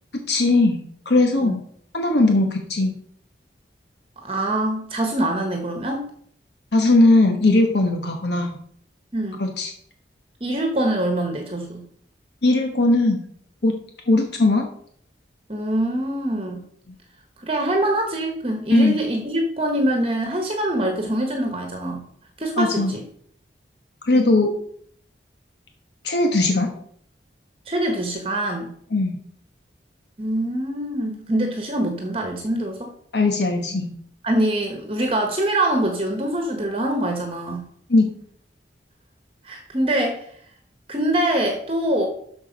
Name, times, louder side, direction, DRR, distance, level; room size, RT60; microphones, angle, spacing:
voice 1, 0.1-0.8 1.1-1.6 1.9-2.9 6.7-8.5 9.4-9.7 12.4-13.2 13.6-13.7 14.1-14.7 18.7-19.0 22.6-22.9 24.1-24.5 26.0-26.7 28.9-29.2 33.1-33.9 37.9-38.1, left 2 dB, 65° left, 3 dB, 1.2 m, -18 dB
voice 2, 4.2-6.0 9.1-9.4 10.4-11.8 15.5-16.6 17.4-22.0 22.4-23.0 24.1-24.5 27.7-28.7 30.2-32.9 34.2-37.7 39.4-40.3 40.9-42.1, right 1 dB, 30° right, 3 dB, 1.2 m, -24 dB
13.0 x 4.8 x 5.2 m, 0.63 s
head